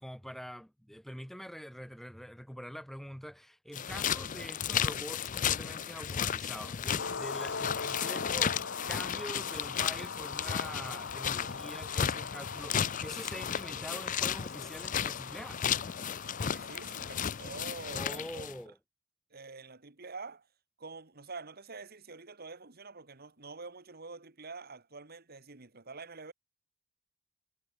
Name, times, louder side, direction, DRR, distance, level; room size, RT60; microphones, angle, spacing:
voice 1, 0.0-15.6 17.9-18.8, equal, ahead, 1.5 m, -45 dB
sound 1, 3.7-18.6, left 8 dB, 40° left, 0.5 m, -34 dB
sound 2, 7.0-17.7, left 5 dB, 60° left, 1.7 m, -42 dB
voice 2, 16.4-18.5 19.3-20.5 20.8-26.3, right 4 dB, 50° right, 2.0 m, -46 dB
head